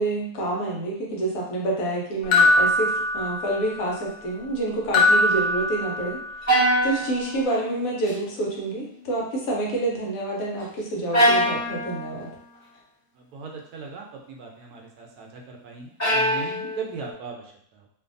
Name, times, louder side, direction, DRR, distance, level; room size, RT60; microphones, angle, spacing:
voice 1, 0.0-12.3, right 2 dB, 70° left, -2 dB, 1.1 m, -28 dB
sound 1, 2.3-3.8 4.9-6.4, left 2 dB, 90° left, 1.2 m, -21 dB
sound 2, 6.5-8.1 8.5-9.0 11.1-12.3 16.0-17.1, equal, 15° left, 0.7 m, -24 dB
voice 2, 13.3-17.9, right 5 dB, 80° right, 1 dB, 1.1 m, -38 dB
2.6 x 2.5 x 2.5 m, 0.68 s
omnidirectional pair, 1.6 m